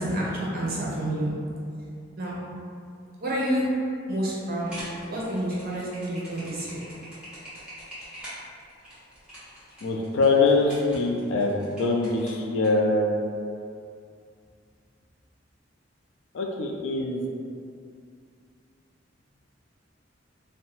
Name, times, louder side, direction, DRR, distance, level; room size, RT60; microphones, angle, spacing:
voice 1, 0.0-1.4 2.2-2.4 3.2-3.8 4.1-6.8, right 1 dB, 50° right, -6 dB, 0.6 m, -29 dB
sound 1, 4.6-12.7, equal, 5° right, 0.8 m, -44 dB
voice 2, 9.8-13.1 16.3-17.2, left 3 dB, 70° left, 0 dB, 0.4 m, -23 dB
2.7 x 2.1 x 2.8 m, 2.3 s
head